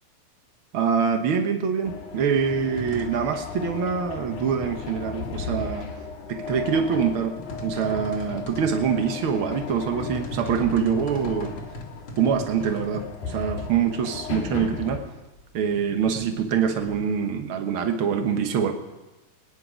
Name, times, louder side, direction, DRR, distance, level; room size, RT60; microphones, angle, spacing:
voice 1, 0.7-5.9 6.3-7.4 7.6-11.5 12.2-15.0 15.5-18.7, right 7 dB, 80° right, 5 dB, 1.1 m, -25 dB
sound 1, 1.8-15.0, left 5 dB, 80° left, 3.6 m, -36 dB
sound 2, 2.4-17.0, equal, 45° left, 1.8 m, -39 dB
24.5 x 9.9 x 5.1 m, 1.1 s
omnidirectional pair, 4.1 m